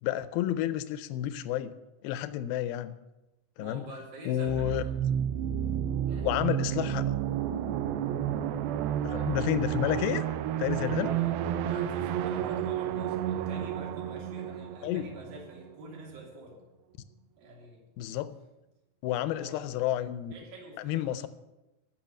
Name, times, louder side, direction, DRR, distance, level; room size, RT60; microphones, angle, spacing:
voice 1, 0.0-1.7 2.0-3.0 3.6-3.9 4.3-4.8 6.2-7.0 9.0-10.2 10.6-11.1 14.8-15.1 18.0-18.4 19.0-20.3 20.8-21.3, left 12 dB, 90° left, 14 dB, 2.5 m, -30 dB
voice 2, 3.6-4.9 6.1-6.4 6.7-6.9 9.0-10.0 11.0-11.4 11.7-16.6 17.4-17.8 19.2-19.8 20.3-21.2, right 2 dB, 65° right, -2 dB, 4.7 m, -46 dB
sound 1, 4.5-16.0, right 10 dB, 85° right, 2.5 m, -31 dB
14.0 x 6.4 x 9.0 m, 0.98 s
omnidirectional pair, 4.2 m